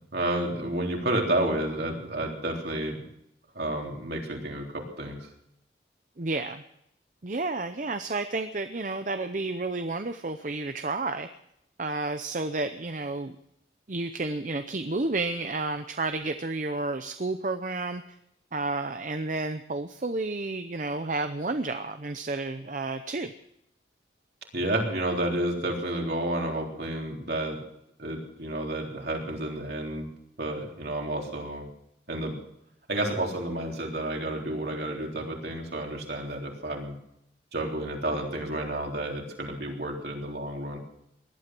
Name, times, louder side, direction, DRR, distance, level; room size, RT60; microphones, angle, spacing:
voice 1, 0.0-3.0 3.5-5.3 24.5-27.6 28.0-30.1 30.4-31.7 32.1-32.3 32.9-36.9 37.5-40.8, right 1 dB, 60° right, 0 dB, 3.6 m, -30 dB
voice 2, 6.2-6.6 7.2-11.3 11.8-13.3 13.9-18.0 18.5-23.3, right 3 dB, 45° right, 8 dB, 0.7 m, -31 dB
19.5 x 12.0 x 6.1 m, 0.77 s
head